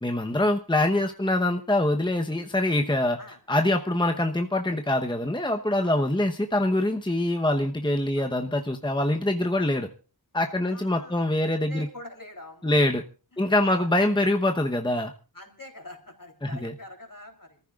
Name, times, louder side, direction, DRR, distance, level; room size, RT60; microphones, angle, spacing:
voice 1, 0.0-3.2 3.5-9.9 10.3-11.9 12.6-13.0 13.4-15.1 16.4-16.7, left 1 dB, 10° left, 4 dB, 1.1 m, -24 dB
voice 2, 5.8-6.1 8.2-8.3 10.7-12.7 13.3-13.9 15.3-17.6, left 1 dB, 55° left, 3 dB, 3.7 m, -45 dB
26.5 x 14.5 x 2.5 m, 0.34 s
wide cardioid pair, 45°, 39 cm